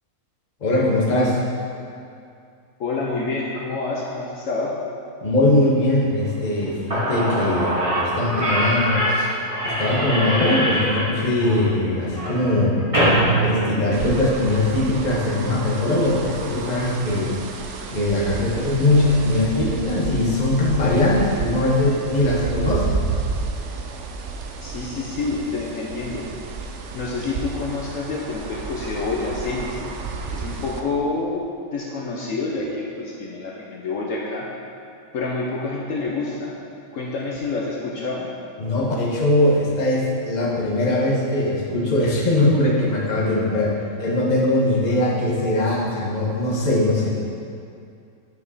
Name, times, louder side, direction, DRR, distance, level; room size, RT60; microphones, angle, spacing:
voice 1, 0.6-1.4 5.2-9.3 9.6-12.8 13.4-17.4 17.7-23.0 38.6-47.2, left 1 dB, 30° left, -3 dB, 1.1 m, -21 dB
voice 2, 2.8-4.7 24.6-26.3 26.9-29.9 30.3-31.4 31.7-34.5 35.1-36.6 36.9-38.3, left 3 dB, 65° left, -3 dB, 1.1 m, -27 dB
Slam / Squeak, 6.6-6.7 6.9-14.4, right 1 dB, 20° right, 1.9 m, -23 dB
sound 1, 13.9-30.8, right 4 dB, 65° right, 0.8 m, -31 dB
9.3 x 5.0 x 4.1 m, 2.4 s
omnidirectional pair, 1.6 m